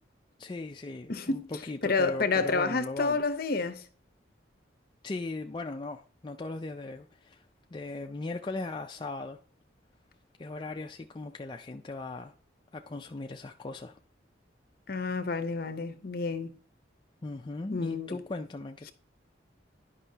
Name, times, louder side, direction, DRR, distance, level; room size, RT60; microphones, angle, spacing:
voice 1, 0.4-3.2 5.0-7.4 7.7-9.4 10.4-12.3 12.7-14.0 17.2-18.9, left 2 dB, 25° left, 0.4 m, -38 dB
voice 2, 1.1-1.4 1.8-3.8 14.9-16.5 17.7-18.2, left 4 dB, 50° left, 0.8 m, -29 dB
11.0 x 5.3 x 2.8 m
head